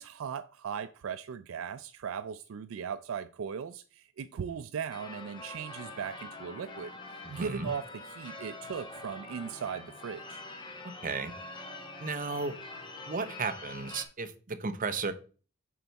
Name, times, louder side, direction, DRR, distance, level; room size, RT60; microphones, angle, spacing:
voice 1, 0.0-6.9 7.3-10.4, right 7 dB, 70° right, 0.4 m, -38 dB
Church bell / Car / Alarm, 4.9-14.0, left 2 dB, 20° left, 0.9 m, -45 dB
voice 2, 7.2-7.7 11.0-11.3 12.0-12.5 13.1-15.1, right 4 dB, 40° right, 0.7 m, -34 dB
7.5 x 4.6 x 4.0 m
head